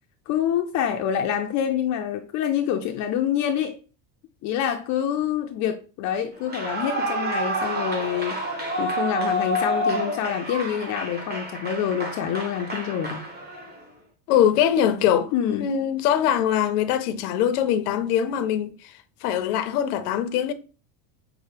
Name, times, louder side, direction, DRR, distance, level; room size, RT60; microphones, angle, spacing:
voice 1, 0.3-3.8 4.4-8.4 8.8-13.2 15.3-15.7, left 9 dB, 40° left, 0.4 m, -26 dB
Clapping / Cheering / Applause, 6.4-13.8, equal, 20° right, 1.0 m, -29 dB
voice 2, 14.3-15.3 15.6-18.9 19.2-20.5, left 10 dB, 85° left, 0.7 m, -22 dB
5.6 x 2.1 x 3.3 m
supercardioid pair, 130°, 44 cm